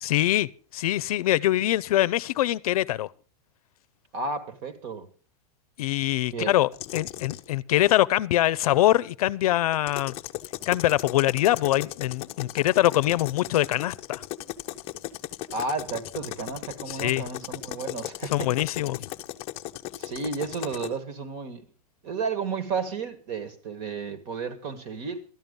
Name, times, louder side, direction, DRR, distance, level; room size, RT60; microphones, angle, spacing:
voice 1, 0.0-3.1 5.8-10.1 10.7-14.2 16.9-17.2 18.3-19.1, left 14 dB, 70° left, 0.6 m, -24 dB
voice 2, 4.1-5.1 6.3-6.5 15.5-18.5 20.0-21.6 22.0-25.2, right 4 dB, 40° right, 1.7 m, -32 dB
sound 1, 6.7-7.5 9.7-20.9, left 15 dB, 30° left, 0.6 m, -37 dB
13.0 x 10.5 x 5.3 m
supercardioid pair, 155°, 19 cm